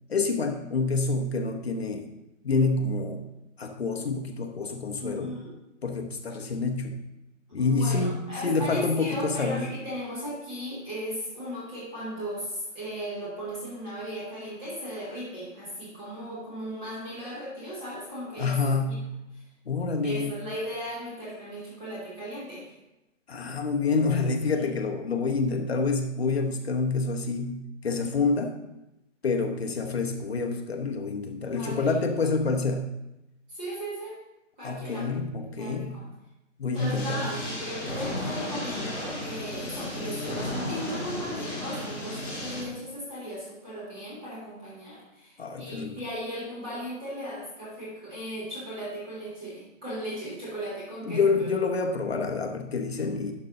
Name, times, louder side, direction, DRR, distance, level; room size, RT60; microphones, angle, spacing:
voice 1, 0.1-2.0 2.4-3.2 3.6-5.3 5.8-7.0 7.5-9.7 18.4-19.1 19.7-20.3 23.3-28.6 29.2-32.9 34.6-35.9 36.6-37.3 45.4-46.0 51.0-53.3, left 4 dB, 50° left, 4 dB, 1.0 m, -27 dB
voice 2, 5.0-5.5 7.6-19.0 19.3-19.4 20.0-22.7 24.2-24.3 24.5-24.7 31.4-32.0 33.5-34.2 34.6-35.0 35.4-36.1 36.7-51.5, equal, 5° right, -9 dB, 1.0 m, -37 dB
sound 1, 36.7-42.6, left 1 dB, 15° left, 1.9 m, -34 dB
11.5 x 5.3 x 3.7 m, 0.92 s
hypercardioid pair, 170°, 39 cm